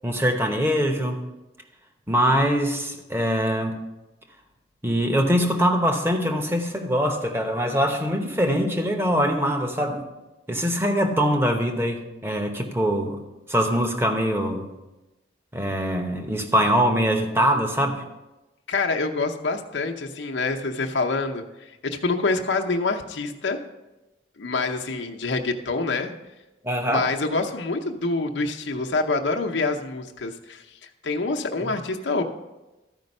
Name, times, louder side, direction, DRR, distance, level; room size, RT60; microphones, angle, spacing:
voice 1, 0.0-1.2 2.1-3.8 4.8-10.0 10.5-13.2 13.5-14.7 15.5-18.0 26.6-27.1 31.6-31.7, equal, 15° right, 4 dB, 0.9 m, -23 dB
voice 2, 18.7-23.6 24.4-26.2 26.9-32.2, left 3 dB, 90° left, 2 dB, 0.8 m, -26 dB
13.0 x 5.2 x 5.3 m, 1.0 s
head